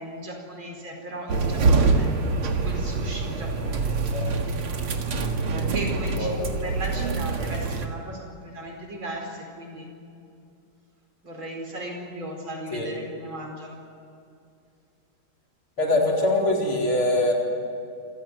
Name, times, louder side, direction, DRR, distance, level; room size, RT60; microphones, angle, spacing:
voice 1, 0.0-2.1 2.5-4.0 5.5-9.9 11.2-13.8, right 1 dB, 70° right, 1 dB, 5.5 m, -37 dB
sound 1, 1.3-7.9, right 3 dB, 90° right, 2.7 m, -25 dB
voice 2, 15.8-17.3, left 1 dB, 80° left, -1 dB, 5.1 m, -23 dB
28.0 x 15.5 x 9.6 m, 2.5 s
omnidirectional pair, 2.3 m